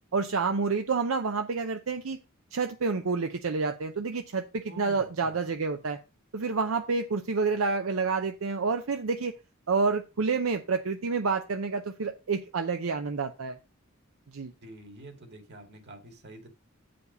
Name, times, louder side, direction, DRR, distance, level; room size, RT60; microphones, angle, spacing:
voice 1, 0.1-2.2 2.5-6.0 6.3-9.3 9.7-13.6 14.3-14.5, right 4 dB, 80° right, 6 dB, 0.6 m, -29 dB
voice 2, 4.7-5.4 14.6-16.5, right 2 dB, 55° right, 5 dB, 2.2 m, -47 dB
8.3 x 5.2 x 5.3 m, 0.30 s
head